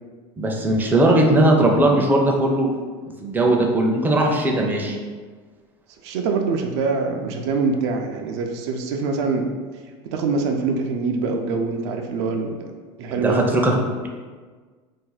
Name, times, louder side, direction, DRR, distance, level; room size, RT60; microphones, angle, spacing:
voice 1, 0.4-2.7 3.2-5.0 13.2-13.7, right 1 dB, 15° right, 0 dB, 0.4 m, -18 dB
voice 2, 6.0-9.5 10.1-12.7 13.0-13.4, right 4 dB, 75° right, 3 dB, 0.4 m, -24 dB
2.6 x 2.1 x 3.9 m, 1.4 s
supercardioid pair, 115°, 14 cm